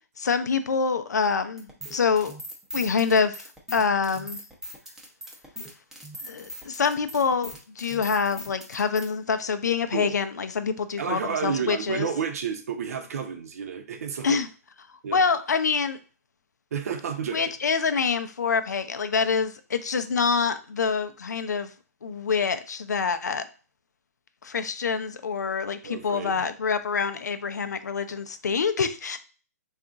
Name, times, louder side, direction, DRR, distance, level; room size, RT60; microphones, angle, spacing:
voice 1, 0.2-2.4 2.7-3.4 3.7-4.4 6.2-12.1 14.2-14.5 14.9-16.0 17.3-21.7 22.0-23.4 24.4-29.2, left 5 dB, 90° left, 10 dB, 0.5 m, -26 dB
sound 1, 1.6-9.1, equal, 5° right, 0.7 m, -39 dB
voice 2, 11.0-14.4 15.0-15.2 16.7-17.4 25.8-26.5, right 7 dB, 65° right, 6 dB, 0.7 m, -31 dB
3.5 x 2.4 x 3.8 m, 0.36 s
hypercardioid pair, 145°, 9 cm